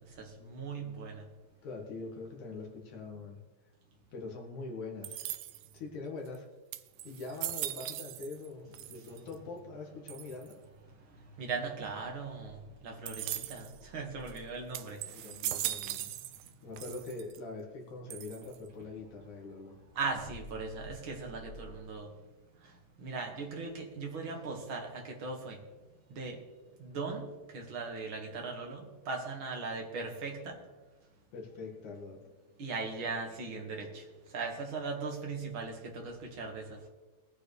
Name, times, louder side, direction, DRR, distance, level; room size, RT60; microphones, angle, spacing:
voice 1, 0.2-1.2 11.4-12.6 12.8-15.0 20.0-22.1 23.0-25.6 26.2-26.4 26.8-27.3 27.5-30.6 32.6-34.0 34.3-36.8, right 4 dB, 45° right, 1 dB, 2.4 m, -38 dB
voice 2, 1.6-3.4 4.1-5.2 5.7-6.5 7.0-10.6 13.2-13.4 15.1-16.1 16.6-19.8 31.3-32.2, left 3 dB, 70° left, 0 dB, 3.4 m, -43 dB
sound 1, 5.0-5.8 6.3-6.4 6.7-8.5 8.7-9.3 10.1-10.5 13.1-13.7 14.3-14.4 14.7-16.5 16.8-17.4 18.1-18.7, right 13 dB, 90° right, 1.5 m, -39 dB
21.5 x 9.3 x 3.4 m, 1.2 s
omnidirectional pair, 3.6 m